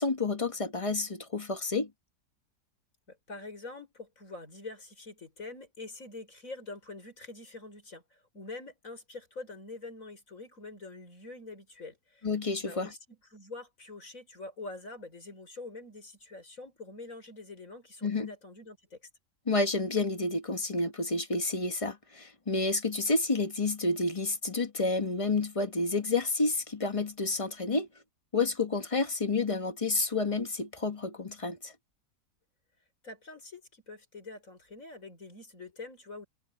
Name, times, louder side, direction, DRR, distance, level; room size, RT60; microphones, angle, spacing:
voice 1, 0.0-1.9 12.2-12.9 18.0-18.3 19.5-27.9 28.3-31.7, left 3 dB, 25° left, 1.0 m, -30 dB
voice 2, 3.1-12.3 12.6-19.0 33.0-36.3, left 3 dB, 50° left, 6.0 m, -45 dB
omnidirectional pair, 1.8 m